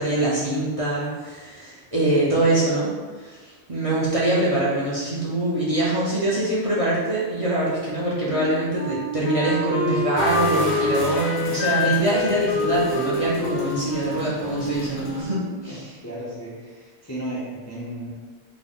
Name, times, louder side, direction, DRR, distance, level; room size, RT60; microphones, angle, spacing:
voice 1, 0.0-2.9 3.2-15.9, right 1 dB, 35° right, -7 dB, 0.7 m, -24 dB
Wind instrument woodwind instrument, 8.3-15.8, left 3 dB, 65° left, 0.8 m, -27 dB
sound 1, 10.2-15.2, left 1 dB, 80° left, 1.2 m, -35 dB
voice 2, 16.0-18.1, right 1 dB, 20° left, -7 dB, 0.4 m, -34 dB
3.9 x 2.1 x 3.6 m, 1.4 s
omnidirectional pair, 1.1 m